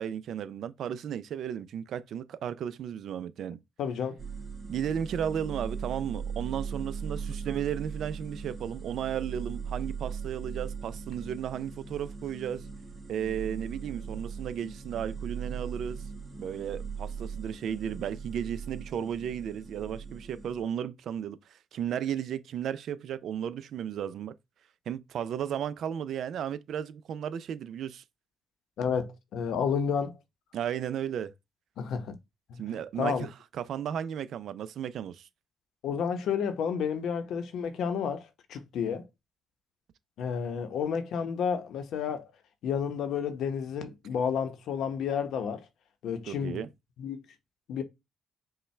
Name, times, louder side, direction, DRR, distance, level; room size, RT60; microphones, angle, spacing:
voice 1, 0.0-3.6 4.7-12.7 13.1-16.0 16.4-24.3 24.9-28.0 30.5-31.3 32.6-35.3 46.3-46.7, right 9 dB, 70° right, 0.4 m, -34 dB
voice 2, 3.8-4.2 28.8-30.1 31.8-32.1 32.5-32.6 33.0-33.3 35.8-39.1 40.2-42.3 42.6-45.7 46.0-46.6 47.0-47.2 47.7-47.8, left 7 dB, 75° left, 0.8 m, -31 dB
sound 1, 4.2-20.6, right 6 dB, 25° right, 1.7 m, -39 dB
5.5 x 2.2 x 3.2 m
cardioid pair, 90°, 0 cm